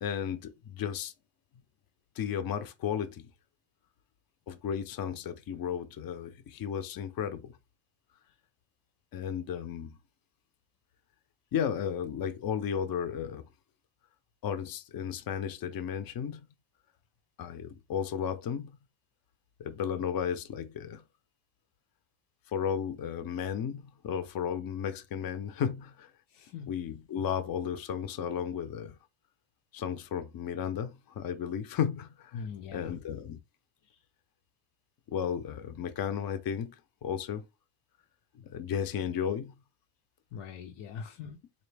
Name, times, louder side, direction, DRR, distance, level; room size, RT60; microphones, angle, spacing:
voice 1, 0.0-1.1 2.2-3.3 4.5-7.6 9.1-10.0 11.5-13.5 14.4-16.4 17.4-18.7 19.6-21.0 22.5-26.1 26.7-29.0 29.7-32.4 32.7-33.4 35.1-37.5 38.4-39.6, left 8 dB, 50° left, 0.6 m, -34 dB
voice 2, 26.3-26.7 32.3-32.9 33.9-34.0 40.3-41.4, left 6 dB, 90° left, 0.8 m, -42 dB
4.0 x 2.6 x 3.3 m
cardioid pair, 130°, 46 cm